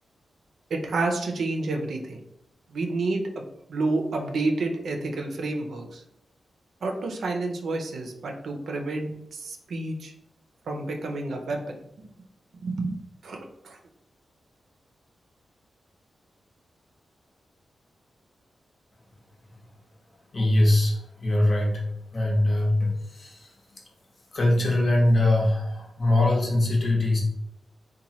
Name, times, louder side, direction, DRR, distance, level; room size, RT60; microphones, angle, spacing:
voice 1, 0.7-2.2 2.7-3.4 3.7-6.0 6.8-10.1 10.7-11.8 12.6-13.0 13.2-13.8, right 2 dB, 75° right, 3 dB, 0.4 m, -29 dB
voice 2, 20.3-21.8 22.1-23.5 24.3-27.2, left 1 dB, 45° left, -1 dB, 0.8 m, -22 dB
3.0 x 2.1 x 2.8 m, 0.79 s
cardioid pair, 90°, 0 cm